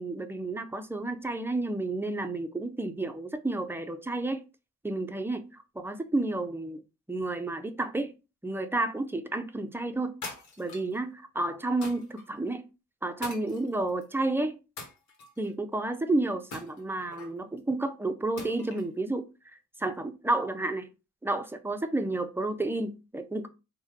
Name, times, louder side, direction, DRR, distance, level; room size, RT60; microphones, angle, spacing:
voice 1, 0.0-4.4 4.8-6.8 7.1-8.1 8.4-10.2 10.6-12.6 13.0-14.6 15.4-19.2 19.8-20.9 21.2-23.5, right 2 dB, 10° right, 0.4 m, -31 dB
sound 1, 10.2-11.0 11.8-12.3 13.2-14.0 14.8-15.5 16.5-17.4 18.4-18.9, left 3 dB, 70° left, 1.1 m, -43 dB
3.0 x 2.1 x 3.5 m
cardioid pair, 90°, 30 cm